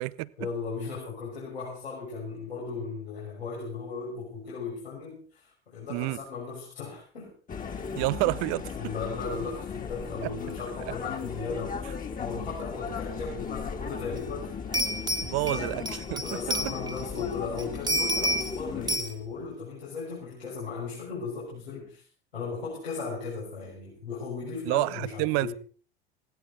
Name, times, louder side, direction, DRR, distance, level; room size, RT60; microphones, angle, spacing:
voice 1, 0.4-7.3 8.8-11.9 12.2-14.6 15.2-15.7 16.2-22.1 22.3-25.6, left 4 dB, 80° left, 6.2 m, -37 dB
sound 1, 7.5-19.0, left 6 dB, 25° left, 2.8 m, -37 dB
voice 2, 7.9-8.7 10.2-10.3 10.9-11.0 15.2-16.7 24.7-25.5, right 21 dB, 50° right, 0.9 m, -29 dB
sound 2, 14.2-14.3 14.7-17.2 17.6-18.6 18.9-19.1, equal, 10° right, 2.0 m, -29 dB
20.0 x 16.5 x 4.1 m
figure-of-eight pair, 70°, 31 cm